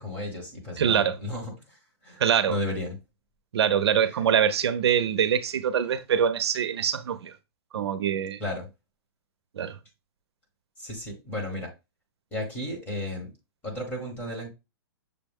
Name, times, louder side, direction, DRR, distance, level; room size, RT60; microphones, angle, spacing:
voice 1, 0.0-2.2 2.5-3.0 4.1-4.2 8.4-8.7 10.8-11.7 12.3-13.3 13.6-14.5, left 1 dB, 10° left, 1.2 m, -34 dB
voice 2, 0.8-1.2 2.2-2.5 3.5-7.4 7.7-8.4 9.5-9.8, right 8 dB, 80° right, 0.6 m, -24 dB
6.6 x 2.2 x 3.5 m
hypercardioid pair, 165°, 14 cm